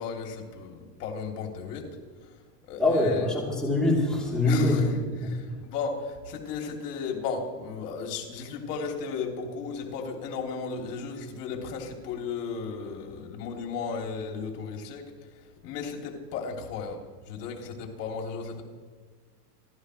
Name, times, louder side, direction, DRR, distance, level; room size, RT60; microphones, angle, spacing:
voice 1, 0.0-1.9 2.2-2.3 2.6-3.2 4.4-4.9 5.2-15.1 15.6-17.0 17.3-18.6, left 5 dB, 80° left, 1 dB, 3.2 m, -35 dB
voice 2, 2.8-5.0 5.2-5.6, left 2 dB, ahead, -5 dB, 3.4 m, -24 dB
29.0 x 12.5 x 3.3 m, 1.5 s
supercardioid pair, 155°, 47 cm